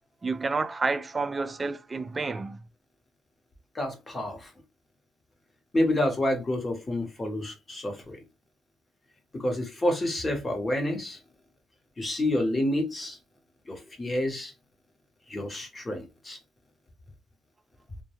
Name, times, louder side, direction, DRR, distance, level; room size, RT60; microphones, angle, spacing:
voice 1, 0.2-2.6, right 3 dB, 30° right, 0.3 m, -29 dB
voice 2, 3.7-4.5 5.7-8.2 9.3-11.2 12.0-13.2 13.7-14.5 15.3-16.4, left 1 dB, 25° left, 1.0 m, -29 dB
2.2 x 2.2 x 2.8 m
cardioid pair, 90°, 0 cm